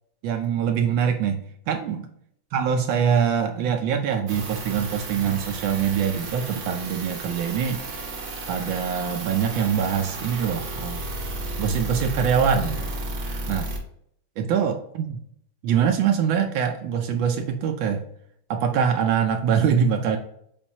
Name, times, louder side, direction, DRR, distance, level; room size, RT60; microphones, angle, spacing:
voice 1, 0.2-2.0 2.5-7.8 8.5-11.0 11.6-12.9 13.5-13.7 14.4-15.2 15.6-18.0 18.5-20.2, right 7 dB, 80° right, 5 dB, 1.3 m, -24 dB
sound 1, 4.3-13.8, right 2 dB, 55° right, 0.9 m, -33 dB
7.0 x 2.6 x 2.7 m, 0.68 s
omnidirectional pair, 2.2 m